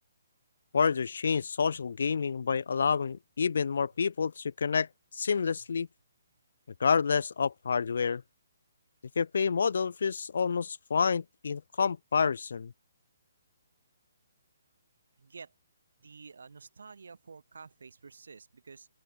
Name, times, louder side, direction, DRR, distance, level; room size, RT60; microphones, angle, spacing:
voice 1, 0.7-4.9 5.1-5.9 6.8-8.2 9.2-12.7, left 6 dB, 60° left, 0.7 m, -28 dB
voice 2, 15.2-15.5 16.0-18.9, right 5 dB, 85° right, 7.5 m, -50 dB
open air
hypercardioid pair, 180°, 0 cm